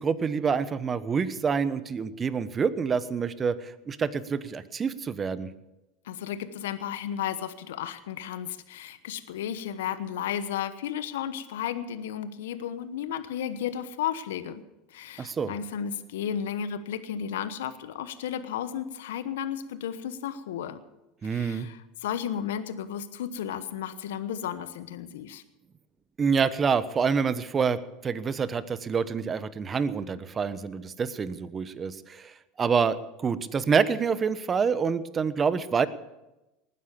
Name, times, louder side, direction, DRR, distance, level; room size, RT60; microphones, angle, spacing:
voice 1, 0.0-5.5 15.2-15.5 21.2-21.7 26.2-35.9, right 6 dB, 30° right, 15 dB, 1.1 m, -27 dB
voice 2, 6.0-14.6 14.9-20.8 21.2-25.4, left 9 dB, 80° left, 12 dB, 1.1 m, -33 dB
19.5 x 9.8 x 7.1 m, 0.97 s
hypercardioid pair, 85°, 0 cm